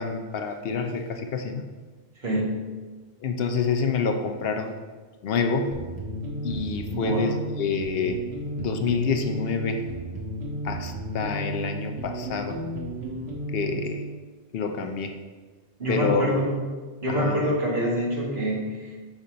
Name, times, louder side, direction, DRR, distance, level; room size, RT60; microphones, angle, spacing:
voice 1, 0.0-1.7 3.2-4.7 5.2-5.8 6.4-8.2 8.6-9.9 10.6-12.6 13.5-14.1 14.5-15.2 15.9-16.3 17.1-17.4, left 5 dB, 70° left, 6 dB, 0.7 m, -27 dB
voice 2, 2.2-2.5 6.9-7.3 15.8-16.6 17.0-19.0, equal, 50° right, -5 dB, 1.8 m, -25 dB
sound 1, 5.7-14.1, right 1 dB, 75° right, 1.5 m, -33 dB
6.1 x 5.5 x 3.8 m, 1.4 s
omnidirectional pair, 1.1 m